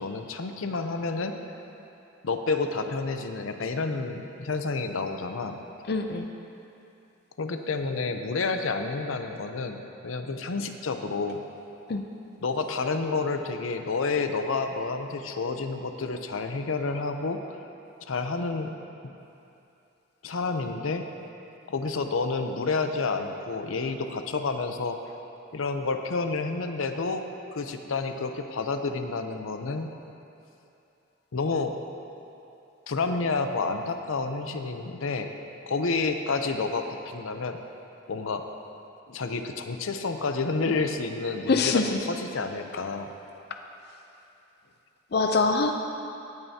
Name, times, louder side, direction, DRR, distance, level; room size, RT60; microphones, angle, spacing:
voice 1, 0.0-1.3 2.2-5.6 7.4-11.4 12.4-17.6 18.1-18.8 19.0-19.2 20.2-21.0 21.7-25.0 25.5-27.3 27.5-29.9 31.3-31.8 32.9-35.3 35.7-37.6 38.1-38.5 39.1-43.1, left 4 dB, 90° left, 6 dB, 0.6 m, -29 dB
voice 2, 5.9-6.3 11.9-12.0 41.5-42.0 45.1-45.7, left 3 dB, 55° left, 4 dB, 0.5 m, -23 dB
17.0 x 9.1 x 2.8 m, 2.8 s
head